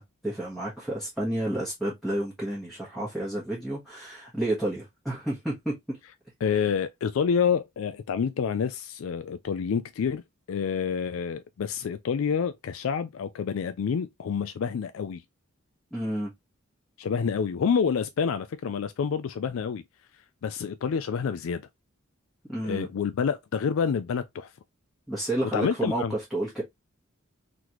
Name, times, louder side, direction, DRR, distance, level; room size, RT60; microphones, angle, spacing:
voice 1, 0.2-5.7 15.9-16.3 22.5-22.9 25.1-26.6, right 1 dB, ahead, 1.2 m, -30 dB
voice 2, 6.4-10.2 10.5-15.2 17.0-19.8 20.4-21.6 22.6-24.5 25.5-26.1, left 6 dB, 70° left, 0.4 m, -28 dB
4.0 x 3.1 x 3.0 m
head